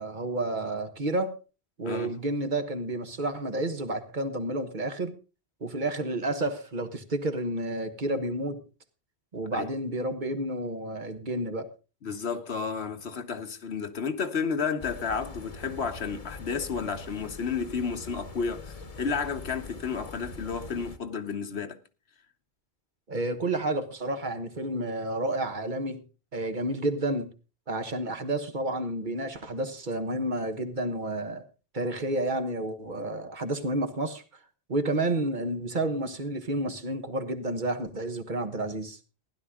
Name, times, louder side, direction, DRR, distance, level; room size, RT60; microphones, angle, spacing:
voice 1, 0.0-1.4 1.8-5.1 5.6-8.6 9.3-11.7 23.1-26.0 26.3-27.3 27.7-31.4 31.7-34.2 34.7-39.0, right 1 dB, 50° right, 1.4 m, -30 dB
voice 2, 12.0-21.8, left 5 dB, 80° left, 1.4 m, -32 dB
sound 1, 14.8-21.0, left 3 dB, 35° left, 1.1 m, -43 dB
15.5 x 11.0 x 3.6 m
omnidirectional pair, 1.1 m